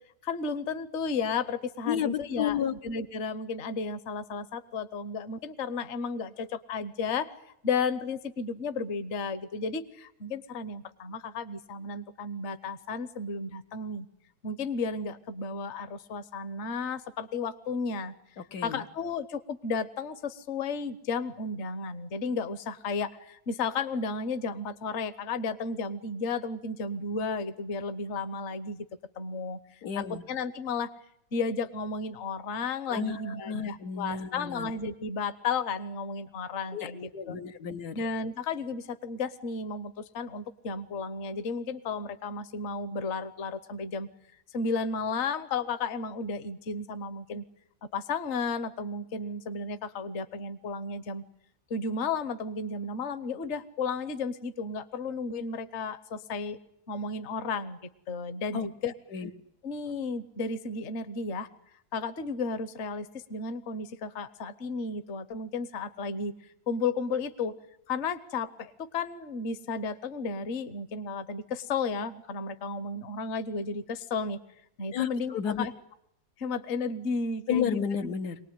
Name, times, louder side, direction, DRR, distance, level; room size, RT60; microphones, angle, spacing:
voice 1, 0.3-7.3 7.6-9.8 10.2-14.0 14.4-18.1 18.6-23.1 23.5-28.8 29.2-29.6 30.0-30.9 31.3-37.4 37.9-44.1 44.5-47.4 47.9-51.2 51.7-56.6 56.9-57.8 58.1-58.9 59.6-61.5 61.9-63.0 63.3-66.3 66.7-67.5 67.9-68.5 68.9-74.4 74.8-75.7 76.4-77.8, left 4 dB, 50° left, 12 dB, 1.2 m, -33 dB
voice 2, 1.9-2.7 18.4-18.8 29.8-30.2 32.9-34.7 36.7-38.0 58.5-58.7 59.1-59.3 74.9-75.7 77.5-78.4, left 8 dB, 75° left, 7 dB, 1.7 m, -32 dB
23.5 x 19.0 x 9.3 m, 0.78 s
omnidirectional pair, 1.7 m